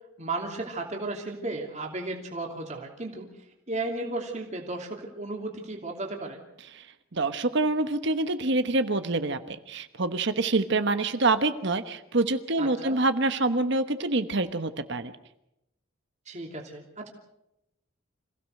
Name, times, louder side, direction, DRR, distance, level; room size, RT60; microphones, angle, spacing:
voice 1, 0.2-3.3 3.7-6.4 12.6-13.0 16.3-17.1, right 2 dB, 35° right, 1 dB, 2.9 m, -34 dB
voice 2, 7.1-15.1, right 2 dB, 60° right, 10 dB, 1.2 m, -26 dB
27.0 x 16.5 x 6.6 m, 0.85 s
head